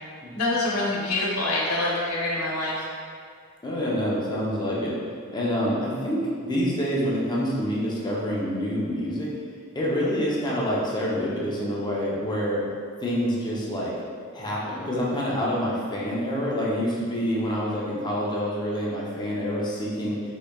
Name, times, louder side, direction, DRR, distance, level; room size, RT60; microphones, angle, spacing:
voice 1, 0.3-2.9, left 2 dB, 85° left, -4 dB, 1.0 m, -26 dB
voice 2, 3.6-5.0 5.3-9.3 9.7-12.6 13.0-13.9 14.3-20.2, equal, 20° left, -5 dB, 0.7 m, -27 dB
5.5 x 4.0 x 2.3 m, 2.2 s
head